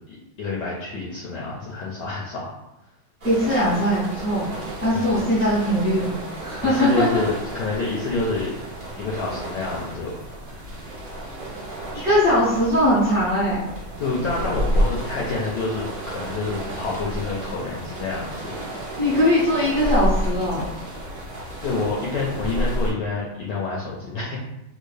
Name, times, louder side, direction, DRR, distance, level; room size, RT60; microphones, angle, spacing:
voice 1, 0.1-2.5 4.9-5.3 6.6-8.5 9.0-10.6 14.0-18.6 21.6-24.4, left 3 dB, 75° left, -5 dB, 1.0 m, -28 dB
voice 2, 3.2-4.5 4.8-6.1 6.4-7.1 11.9-13.6 19.0-20.6, equal, 45° right, -10 dB, 0.8 m, -20 dB
sound 1, 3.2-22.9, equal, 70° right, 0.4 m, -31 dB
3.6 x 2.3 x 3.2 m, 0.92 s
omnidirectional pair, 2.4 m